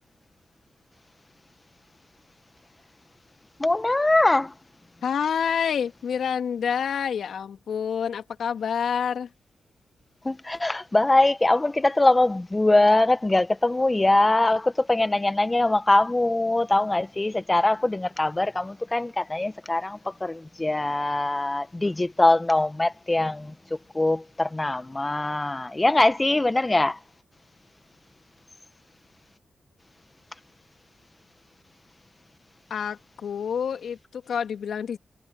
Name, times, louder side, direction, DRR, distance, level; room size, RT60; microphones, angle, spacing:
voice 1, 3.6-4.5 10.2-27.0, left 2 dB, 25° left, 1.2 m, -22 dB
voice 2, 5.0-9.3 32.7-35.0, left 7 dB, 75° left, 2.6 m, -28 dB
supercardioid pair, 45°, 0 cm